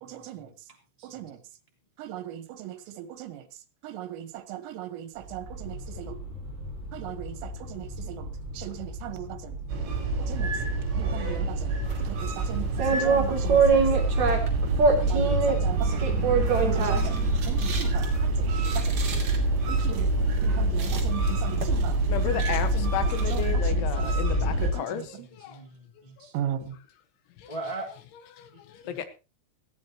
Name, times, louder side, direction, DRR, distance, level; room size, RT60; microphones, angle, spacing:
voice 1, 0.0-0.5 1.0-1.4 2.0-3.5 3.8-6.2 6.9-9.6 10.2-10.5 10.9-13.9 15.0-16.1 16.5-19.1 19.7-20.1 20.4-22.4 22.7-24.1 24.4-25.3 26.3-26.8, right 12 dB, 85° right, 4.0 m, -38 dB
sound 1, 5.2-23.5, equal, 15° right, 7.2 m, -38 dB
sound 2, 9.7-24.7, right 2 dB, 65° right, 6.2 m, -26 dB
sound 3, 11.8-23.5, right 4 dB, 40° right, 3.4 m, -27 dB
voice 2, 22.1-25.6 27.4-27.6 28.1-29.1, left 9 dB, 75° left, 3.7 m, -33 dB
voice 3, 25.2-26.3 27.5-27.9 28.8-29.0, right 2 dB, 20° left, 0.9 m, -39 dB
18.5 x 14.5 x 3.0 m
omnidirectional pair, 5.7 m